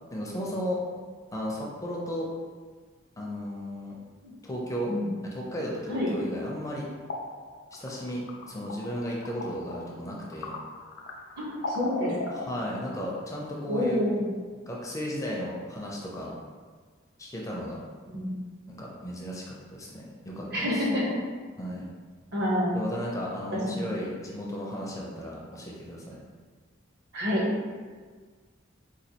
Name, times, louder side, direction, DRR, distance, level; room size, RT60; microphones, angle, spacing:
voice 1, 0.1-0.8 1.3-2.3 3.2-4.0 4.4-4.9 5.2-6.9 7.7-10.5 12.3-14.0 14.7-16.3 17.2-17.8 18.7-20.9 21.6-21.9 22.7-26.2, equal, 15° left, -3 dB, 0.4 m, -34 dB
sound 1, 6.7-13.1, left 2 dB, 80° left, 0.5 m, -39 dB
voice 2, 11.4-12.4 13.7-14.2 18.1-18.3 20.5-21.2 22.3-22.8 23.7-23.8 27.1-27.4, left 1 dB, 55° right, -4 dB, 0.9 m, -28 dB
4.1 x 2.3 x 2.8 m, 1.6 s
head